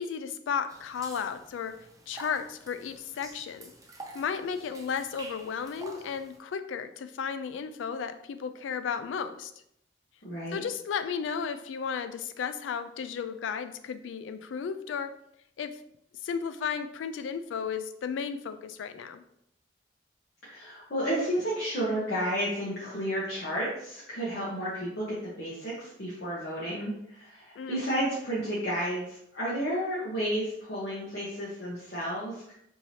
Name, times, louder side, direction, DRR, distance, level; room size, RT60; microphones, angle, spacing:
voice 1, 0.0-1.8 2.1-3.7 4.1-9.5 10.5-15.1 15.6-15.7 16.2-19.2 27.6-27.8, left 6 dB, 90° left, 10 dB, 0.3 m, -34 dB
sound 1, 0.7-6.4, right 2 dB, 20° right, 0.4 m, -48 dB
voice 2, 10.2-10.6 20.4-32.5, equal, 55° left, -7 dB, 0.9 m, -32 dB
4.6 x 2.7 x 2.8 m, 0.75 s
head